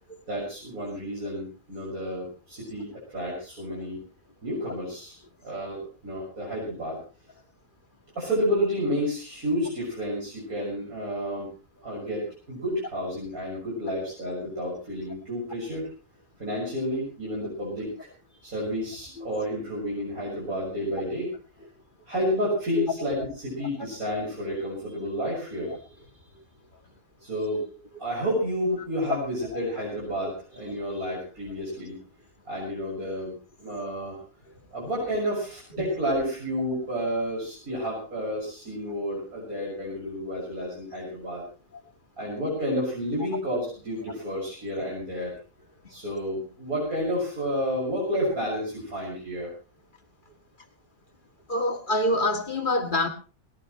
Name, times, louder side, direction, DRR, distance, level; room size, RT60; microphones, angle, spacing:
voice 1, 0.3-4.0 4.4-5.2 5.4-7.0 8.2-11.5 11.8-15.9 16.4-18.1 18.4-21.3 22.1-25.8 27.2-27.7 28.0-32.0 32.5-34.2 34.7-41.4 42.2-45.4 45.9-49.5, equal, 85° right, 7.0 m, -30 dB
voice 2, 51.5-53.1, left 1 dB, 35° left, 2.1 m, -25 dB
20.0 x 18.5 x 3.2 m
omnidirectional pair, 1.5 m